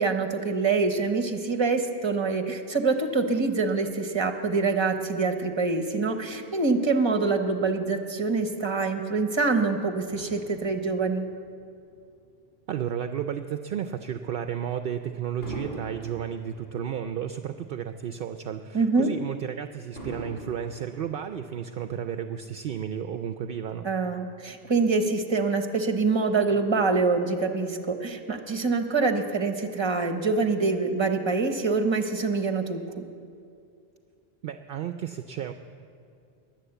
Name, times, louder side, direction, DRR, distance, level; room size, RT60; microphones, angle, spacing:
voice 1, 0.0-11.3 18.7-19.1 23.8-33.0, right 4 dB, 25° right, 7 dB, 1.0 m, -25 dB
Fireworks, 10.1-12.7 13.3-13.5 15.4-17.9 18.3-18.4 20.0-21.8 22.6-22.7, right 2 dB, 65° left, 4.6 m, -43 dB
voice 2, 12.7-23.9 34.4-35.5, right 9 dB, 65° right, 9 dB, 0.7 m, -33 dB
21.5 x 7.8 x 8.0 m, 2.4 s
omnidirectional pair, 1.1 m